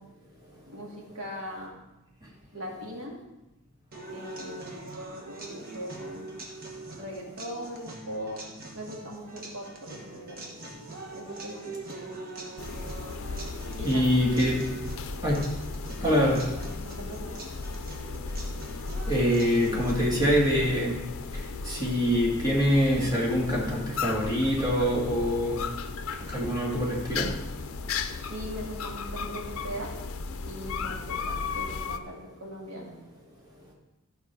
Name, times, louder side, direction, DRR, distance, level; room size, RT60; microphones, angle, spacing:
voice 1, 0.7-1.8 2.5-3.2 4.1-4.6 5.3-6.2 6.9-8.4 8.7-10.5 11.1-12.0 13.8-14.1 16.0-17.5 28.3-30.0 30.4-32.9, equal, 60° right, -2 dB, 2.3 m, -40 dB
sound 1, 3.9-19.9, right 2 dB, 40° right, 1.3 m, -43 dB
sound 2, 12.6-32.0, left 4 dB, 65° left, 0.5 m, -35 dB
voice 2, 13.8-14.7 15.2-15.4 16.0-16.4 19.1-21.0 21.6-25.7 26.3-27.3, equal, 20° right, -4 dB, 2.1 m, -24 dB
12.0 x 5.3 x 4.6 m, 1.0 s
head